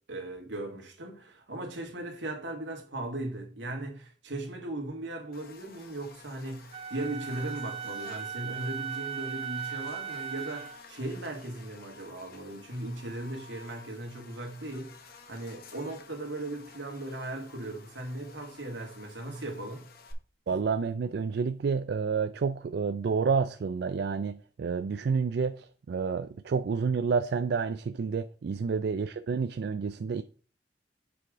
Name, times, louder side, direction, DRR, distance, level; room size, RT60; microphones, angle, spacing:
voice 1, 0.1-19.9 28.5-28.6, right 1 dB, 80° right, 1.8 m, -38 dB
Buzz, 5.3-20.1, left 5 dB, 55° left, 1.0 m, -52 dB
Wind instrument woodwind instrument, 6.7-10.8, right 8 dB, 35° right, 0.9 m, -38 dB
voice 2, 20.5-30.2, right 5 dB, 60° right, 0.4 m, -29 dB
6.9 x 4.9 x 3.7 m
head